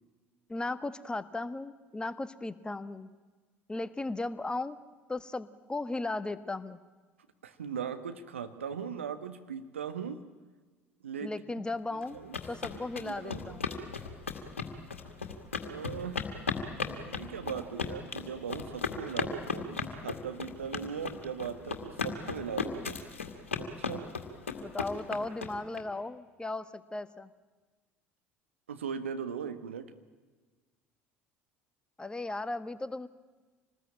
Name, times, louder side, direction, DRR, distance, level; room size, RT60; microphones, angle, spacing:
voice 1, 0.5-3.1 3.7-4.8 5.1-6.8 11.2-13.7 24.6-27.3 32.0-33.1, left 2 dB, 15° left, 14 dB, 1.2 m, -36 dB
voice 2, 7.4-10.2 11.0-11.3 11.9-12.4 12.7-13.9 15.6-16.3 16.8-23.0 23.6-24.1 28.7-29.9, right 7 dB, 75° right, 9 dB, 1.5 m, -39 dB
sound 1, 12.0-25.8, left 5 dB, 80° left, 2.1 m, -36 dB
26.5 x 20.0 x 8.9 m, 1.3 s
figure-of-eight pair, 65°, 7 cm